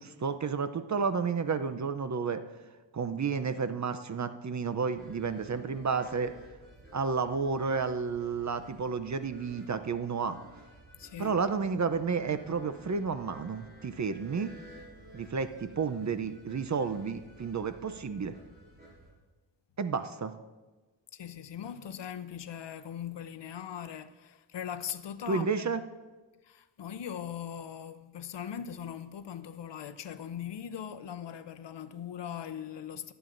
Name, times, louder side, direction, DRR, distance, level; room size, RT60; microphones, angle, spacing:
voice 1, 0.0-2.4 2.9-6.3 6.9-10.4 11.2-14.5 15.1-18.3 19.8-20.3 25.3-25.8, right 5 dB, 40° right, 0.6 m, -31 dB
sound 1, 5.0-19.1, right 1 dB, 20° right, 3.8 m, -54 dB
voice 2, 11.0-11.4 21.1-25.6 26.4-33.1, left 9 dB, 65° left, 0.7 m, -40 dB
18.5 x 9.0 x 2.6 m
cardioid pair, 70°, 46 cm